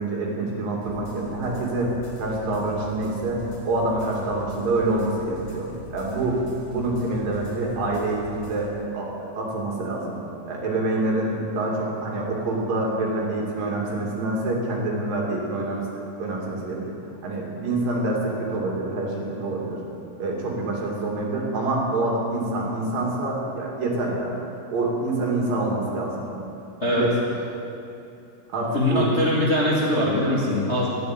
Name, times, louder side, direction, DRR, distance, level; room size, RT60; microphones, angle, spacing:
voice 1, 0.0-1.9 2.2-6.4 6.7-10.2 10.5-17.0 17.2-19.8 20.2-24.3 24.7-26.3 26.9-27.1 28.5-29.1, right 2 dB, 65° right, -2 dB, 4.0 m, -26 dB
sound 1, 0.8-8.6, equal, 45° left, 4.5 m, -41 dB
voice 2, 28.7-30.9, left 1 dB, 25° left, -6 dB, 1.5 m, -22 dB
12.5 x 10.5 x 9.1 m, 2.7 s
omnidirectional pair, 4.4 m